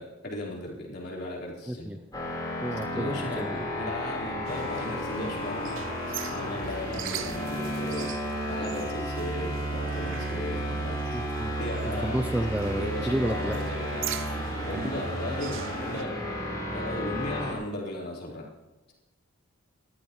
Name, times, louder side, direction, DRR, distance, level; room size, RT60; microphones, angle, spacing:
voice 1, 0.0-1.9 2.7-5.8 6.3-8.1 8.5-11.0 11.6-12.3 12.7-14.1 14.6-16.2 16.7-18.5, left 1 dB, 45° left, -4 dB, 4.0 m, -36 dB
voice 2, 1.7-2.0 2.6-3.7 11.1-11.6 11.9-13.6 14.7-15.2, right 1 dB, 5° right, 8 dB, 0.4 m, -31 dB
sound 1, 2.1-17.5, equal, 20° left, 3.9 m, -33 dB
sound 2, 4.4-16.0, right 6 dB, 60° right, 0.6 m, -40 dB
29.0 x 14.0 x 3.1 m, 1.1 s
head